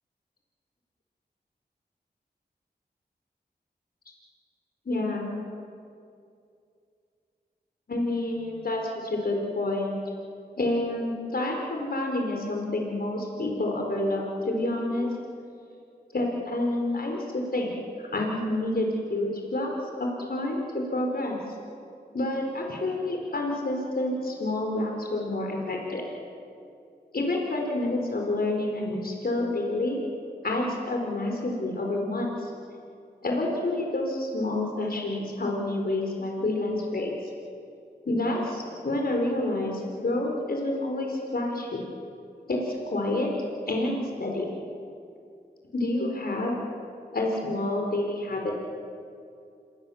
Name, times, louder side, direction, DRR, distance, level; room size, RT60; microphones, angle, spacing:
voice 1, 4.8-5.3 7.9-10.0 10.6-15.1 16.1-17.7 18.0-19.7 20.0-21.3 22.1-26.0 27.1-30.0 30.4-32.5 33.2-37.1 38.0-41.8 42.5-43.3 43.7-44.5 45.7-46.6 47.1-48.5, left 2 dB, 60° left, 1 dB, 4.8 m, -28 dB
27.5 x 23.0 x 7.4 m, 2.5 s
cardioid pair, 50°, 17 cm